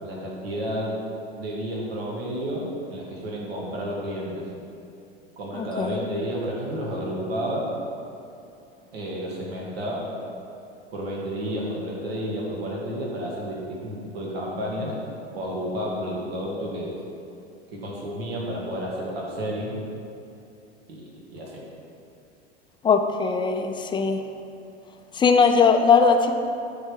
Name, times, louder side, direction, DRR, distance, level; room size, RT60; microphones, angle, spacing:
voice 1, 0.0-0.9 1.4-4.5 5.4-7.7 8.9-10.1 10.9-14.9 15.3-16.9 17.7-19.8 20.9-21.0 21.3-21.5, equal, 65° right, -4 dB, 1.9 m, -31 dB
voice 2, 22.8-24.2 25.2-26.3, left 5 dB, 15° left, 5 dB, 0.5 m, -19 dB
8.6 x 3.6 x 6.3 m, 2.7 s
figure-of-eight pair, 85°, 33 cm